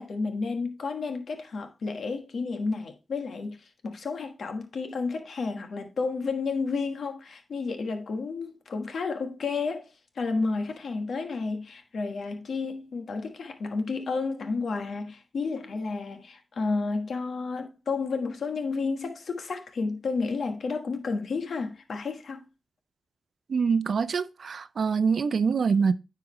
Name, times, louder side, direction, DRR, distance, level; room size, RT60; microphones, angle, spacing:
voice 1, 0.0-22.5, left 4 dB, 80° left, 1.3 m, -31 dB
voice 2, 23.5-25.9, right 5 dB, 75° right, 0.5 m, -25 dB
9.6 x 4.9 x 3.1 m
cardioid pair, 45°, 0 cm